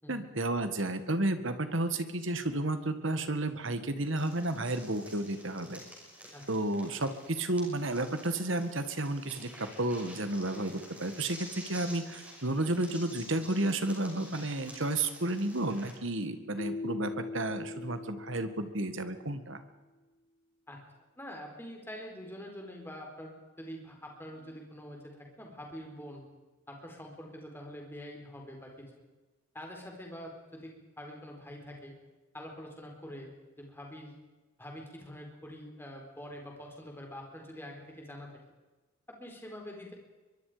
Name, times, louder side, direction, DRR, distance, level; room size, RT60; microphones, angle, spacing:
voice 1, 0.1-5.8 6.5-19.6, right 2 dB, 70° right, 9 dB, 1.9 m, -32 dB
sound 1, 4.1-15.9, equal, 5° right, 6.0 m, -50 dB
Keyboard (musical), 16.6-19.4, left 3 dB, 40° left, 0.9 m, -41 dB
voice 2, 21.2-26.2 26.7-28.9 29.5-31.9 32.3-33.3 33.6-34.1 34.6-38.3 39.1-39.9, equal, 10° left, 1 dB, 4.4 m, -45 dB
23.5 x 23.0 x 5.1 m, 1.2 s
head